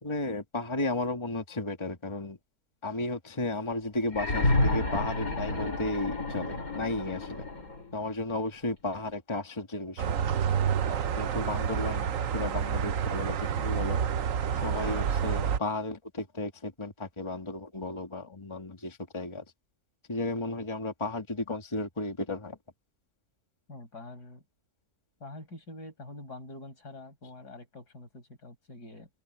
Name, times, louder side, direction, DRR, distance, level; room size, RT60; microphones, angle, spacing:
voice 1, 0.0-2.4 2.8-7.5 7.9-10.2 10.9-14.0 14.5-19.4 20.1-22.6, left 2 dB, 15° left, 1.9 m, -34 dB
sound 1, 4.1-7.9 9.1-9.2, left 2 dB, 60° left, 4.7 m, -30 dB
sound 2, 10.0-15.6, right 8 dB, 60° right, 1.2 m, -29 dB
voice 2, 23.7-24.4 25.2-29.1, left 2 dB, 75° left, 6.2 m, -45 dB
omnidirectional pair, 1.7 m